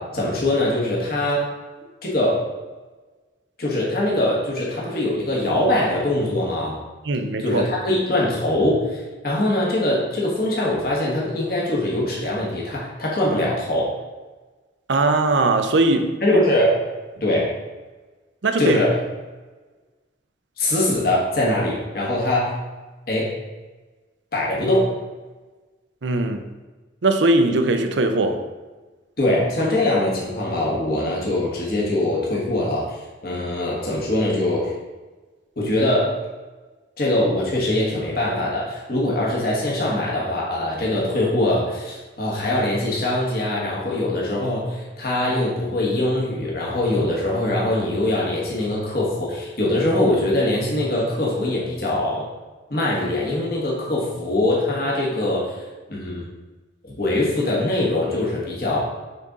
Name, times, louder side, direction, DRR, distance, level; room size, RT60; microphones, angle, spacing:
voice 1, 0.0-1.5 2.0-2.4 3.6-6.8 7.4-13.9 16.2-16.8 17.2-17.5 18.6-19.0 20.6-22.5 23.1-23.3 24.3-24.9 29.2-33.0 33.2-34.7 35.6-36.1 37.0-52.3 52.7-55.6 55.9-56.2 56.9-58.8, left 1 dB, 50° left, 1.4 m, -22 dB
voice 2, 7.0-7.6 14.9-16.2 18.4-18.8 26.0-26.4 27.0-28.5, right 2 dB, 75° right, 0.6 m, -20 dB
6.6 x 3.7 x 4.0 m
head